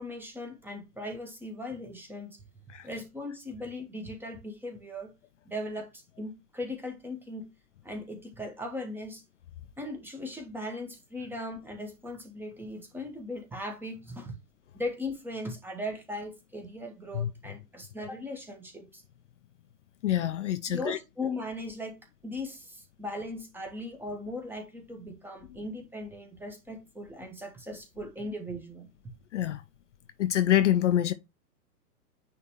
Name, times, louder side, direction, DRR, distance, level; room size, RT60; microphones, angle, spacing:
voice 1, 0.0-2.4 2.8-5.1 5.4-7.5 7.8-9.2 9.8-14.4 14.7-19.0 20.7-21.9 22.2-28.9, left 1 dB, 5° right, 1.2 m, -38 dB
voice 2, 20.0-21.0 25.5-25.6 29.3-29.6 30.2-31.1, left 11 dB, 50° left, 0.6 m, -26 dB
9.5 x 3.4 x 3.0 m
figure-of-eight pair, 115°, 48 cm